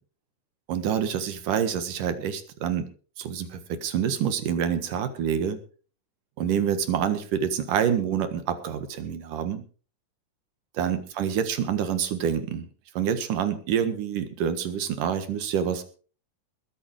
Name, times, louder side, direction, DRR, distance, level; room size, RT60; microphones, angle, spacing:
voice 1, 0.7-2.9 3.2-5.6 6.4-9.6 10.7-12.7 12.9-15.8, right 8 dB, 70° right, 10 dB, 3.1 m, -27 dB
21.0 x 8.6 x 4.8 m, 0.40 s
omnidirectional pair, 3.9 m